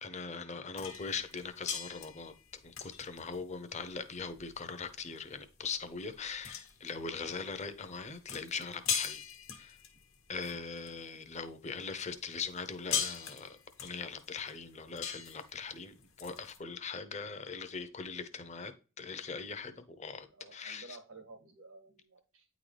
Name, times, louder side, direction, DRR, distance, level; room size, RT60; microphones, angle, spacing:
voice 1, 0.0-2.3 2.6-9.2 9.5-9.8 10.3-18.7 19.0-20.3 20.5-21.0, left 5 dB, 35° left, 0.7 m, -41 dB
sound 1, 0.8-11.3 11.8-16.6, left 7 dB, 75° left, 1.3 m, -41 dB
voice 2, 20.2-22.5, right 3 dB, 90° right, 1.9 m, -53 dB
9.3 x 3.9 x 3.3 m
head